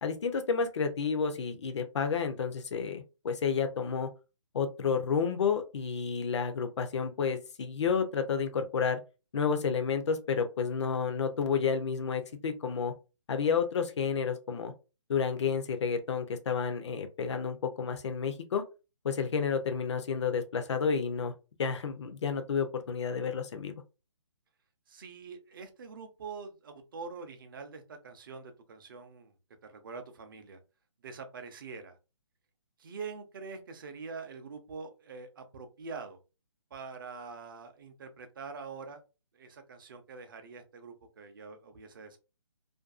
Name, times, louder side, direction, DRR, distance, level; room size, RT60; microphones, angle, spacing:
voice 1, 0.0-4.1 4.5-9.0 9.3-12.9 13.3-14.7 15.1-18.6 19.0-21.3 21.6-23.8, left 6 dB, 60° left, 7 dB, 0.5 m, -30 dB
voice 2, 24.9-29.3 29.6-30.6 31.0-32.0 32.8-36.2 36.7-39.0 39.3-42.2, right 4 dB, 45° right, 7 dB, 0.5 m, -44 dB
2.5 x 2.2 x 2.3 m, 0.30 s
hypercardioid pair, 155°, 16 cm